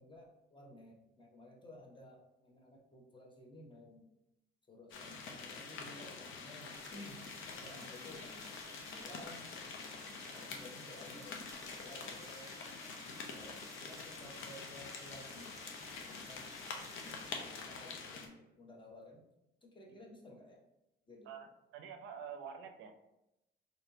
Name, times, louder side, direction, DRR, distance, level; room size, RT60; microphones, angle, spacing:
voice 1, 0.0-4.1 4.7-7.3 7.6-9.5 10.0-12.5 12.9-15.6 16.1-16.5 16.9-19.2 19.6-20.6 21.1-21.3, left 1 dB, 25° left, 0 dB, 0.9 m, -55 dB
sound 1, 4.9-18.3, left 4 dB, 80° left, 0.6 m, -46 dB
sound 2, 6.7-17.3, right 3 dB, 15° right, 0.4 m, -57 dB
voice 2, 7.6-8.0 19.9-20.0 21.2-22.9, right 7 dB, 85° right, 6 dB, 0.5 m, -48 dB
4.2 x 2.8 x 2.7 m, 0.89 s
cardioid pair, 90°, 20 cm